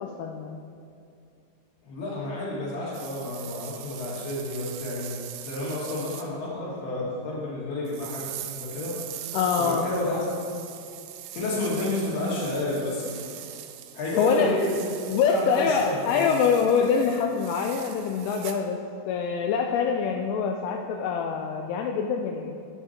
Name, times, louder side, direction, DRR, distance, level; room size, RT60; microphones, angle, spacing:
voice 1, 0.0-0.6 9.3-9.9 14.2-14.5 15.1-18.8 19.1-22.6, left 6 dB, 85° left, 2 dB, 3.0 m, -25 dB
voice 2, 1.8-5.1 5.5-9.3 9.6-10.3 11.3-13.3 13.9-14.8 15.2-16.4, left 2 dB, 60° left, -6 dB, 3.8 m, -30 dB
sound 1, 2.9-6.3 7.9-18.6, right 12 dB, 85° right, 2.7 m, -41 dB
11.5 x 9.4 x 2.9 m, 2.5 s
omnidirectional pair, 5.6 m